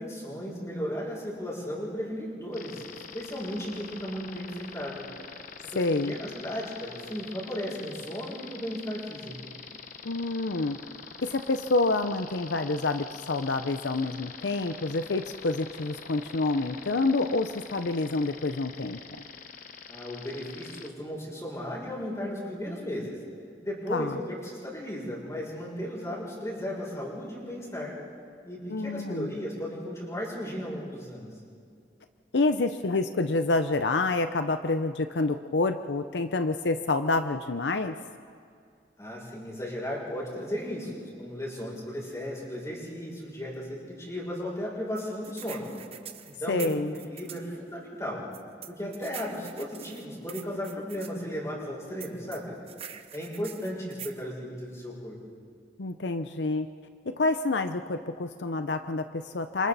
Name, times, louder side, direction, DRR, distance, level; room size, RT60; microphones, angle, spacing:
voice 1, 0.0-5.1 5.6-9.5 19.9-23.2 23.6-27.9 28.4-31.3 39.0-45.7 46.3-48.2 48.7-52.6 53.1-55.2, equal, 15° left, -4 dB, 6.8 m, -35 dB
sound 1, 2.5-20.9, left 6 dB, 50° left, 1.2 m, -44 dB
voice 2, 5.7-6.2 10.0-10.8 11.2-19.2 23.9-24.2 28.7-29.3 32.3-37.9 46.5-46.9 55.8-56.7 57.1-59.7, left 3 dB, 75° left, 9 dB, 0.7 m, -28 dB
sound 2, 45.0-47.5 48.3-51.1 52.0-54.2, right 9 dB, 35° right, 0.9 m, -44 dB
29.5 x 26.5 x 4.2 m, 2.4 s
head